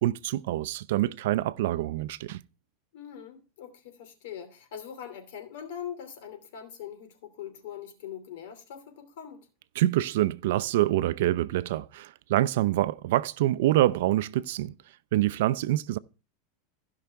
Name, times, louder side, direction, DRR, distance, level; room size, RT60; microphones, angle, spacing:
voice 1, 0.0-2.4 9.8-14.7 15.1-16.0, right 15 dB, 70° right, 0.5 m, -26 dB
voice 2, 2.9-9.5, left 9 dB, 75° left, 2.7 m, -42 dB
16.0 x 5.7 x 3.5 m
supercardioid pair, 155°, 0 cm